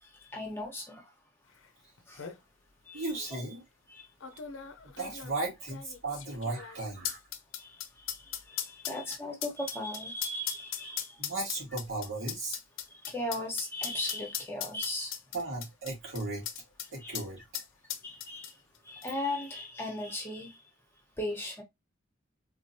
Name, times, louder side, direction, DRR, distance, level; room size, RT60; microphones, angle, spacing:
voice 1, 0.0-1.1 2.1-2.3 2.8-3.1 3.3-3.4 3.9-4.1 7.6-11.3 12.9-15.1 17.0-17.2 18.0-20.7 21.2-21.6, left 1 dB, 10° left, 0.9 m, -38 dB
sound 1, 1.6-1.7 2.0-2.4 3.2-3.3 4.2-16.9 17.1-17.3 17.5-18.8 19.0-19.1, left 10 dB, 85° left, 0.6 m, -38 dB
voice 2, 2.9-3.6 5.0-7.2 11.2-12.6 15.3-16.5 16.9-17.4, right 2 dB, 80° right, 2.2 m, -36 dB
3.7 x 3.2 x 2.7 m
head